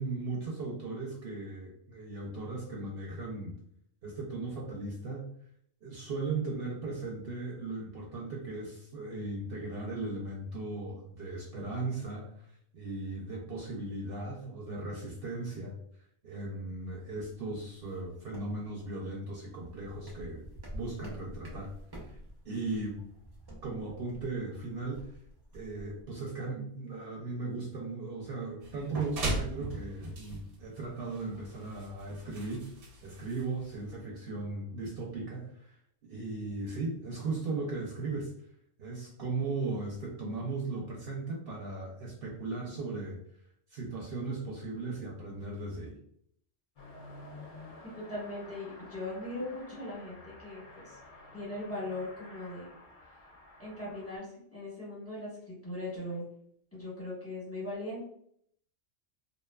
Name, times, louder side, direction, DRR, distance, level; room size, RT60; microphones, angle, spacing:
voice 1, 0.0-3.5 4.0-5.2 5.8-15.7 16.2-20.4 20.7-22.2 22.4-23.0 23.6-25.1 25.5-32.7 33.0-35.8 36.1-38.3 38.8-43.2 43.7-46.0, right 3 dB, 65° right, -2 dB, 0.7 m, -37 dB
sound 1, 16.8-26.0, equal, 35° right, 0.4 m, -50 dB
sound 2, 28.6-34.0, right 2 dB, 90° right, 1.0 m, -39 dB
Car passing by / Accelerating revving vroom, 46.8-54.2, left 2 dB, 55° left, 0.6 m, -51 dB
voice 2, 48.0-51.0 51.3-52.7 53.6-56.2 56.7-58.0, left 1 dB, 15° left, -7 dB, 0.9 m, -39 dB
2.6 x 2.2 x 2.2 m, 0.68 s
omnidirectional pair, 1.2 m